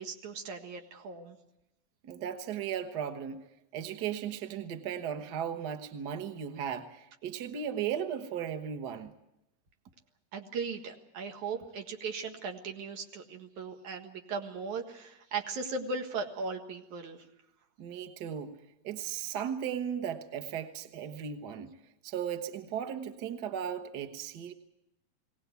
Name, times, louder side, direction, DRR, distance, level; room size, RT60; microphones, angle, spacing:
voice 1, 0.0-1.4 10.3-17.2, right 4 dB, 85° right, 4 dB, 3.2 m, -38 dB
voice 2, 2.0-3.4 3.7-9.1 17.8-18.5 18.8-21.8 22.0-24.5, right 8 dB, 50° right, 7 dB, 1.4 m, -36 dB
22.0 x 18.0 x 8.2 m, 0.87 s
omnidirectional pair, 3.3 m